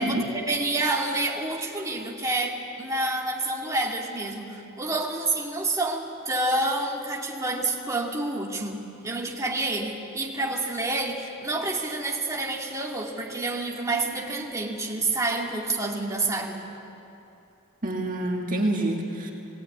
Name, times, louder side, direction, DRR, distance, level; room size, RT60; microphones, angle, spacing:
voice 1, 0.0-16.6, right 2 dB, 15° right, -2 dB, 2.1 m, -28 dB
voice 2, 17.8-19.3, right 1 dB, 40° right, 0 dB, 1.9 m, -27 dB
19.0 x 18.5 x 9.4 m, 2.8 s
head